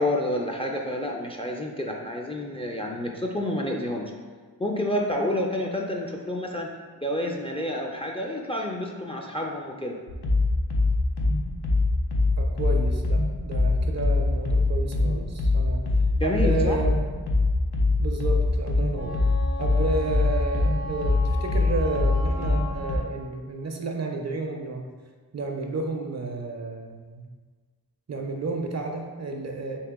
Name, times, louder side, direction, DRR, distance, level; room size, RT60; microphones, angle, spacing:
voice 1, 0.0-4.1 4.6-6.7 7.0-10.0 16.1-16.8, left 1 dB, 15° left, 0 dB, 0.4 m, -29 dB
sound 1, 10.1-23.0, left 2 dB, 85° left, 0.6 m, -23 dB
voice 2, 12.4-15.8 16.2-17.0 18.0-19.2 19.6-24.8 25.3-27.3 28.1-29.8, right 2 dB, 45° right, 3 dB, 0.5 m, -31 dB
Wind instrument woodwind instrument, 18.9-23.2, left 1 dB, 60° left, 1.3 m, -38 dB
3.1 x 2.9 x 3.5 m, 1.5 s
cardioid pair, 45°, 38 cm